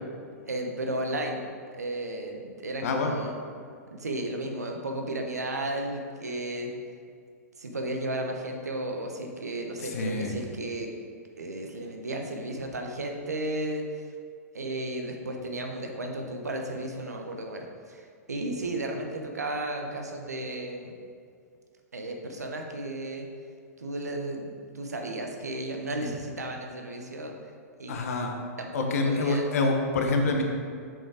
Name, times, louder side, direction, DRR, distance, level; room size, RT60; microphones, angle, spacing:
voice 1, 0.5-1.4 1.7-3.4 3.9-6.7 7.6-10.9 11.4-14.0 14.5-21.0 21.9-23.3 23.8-27.3 27.8-28.0 28.6-29.4, right 1 dB, 90° right, 2 dB, 1.1 m, -34 dB
voice 2, 2.8-3.1 9.8-10.3 27.9-28.3 28.7-30.4, left 3 dB, 70° left, 3 dB, 1.2 m, -26 dB
7.4 x 5.5 x 4.9 m, 2.2 s
hypercardioid pair, 110°, 8 cm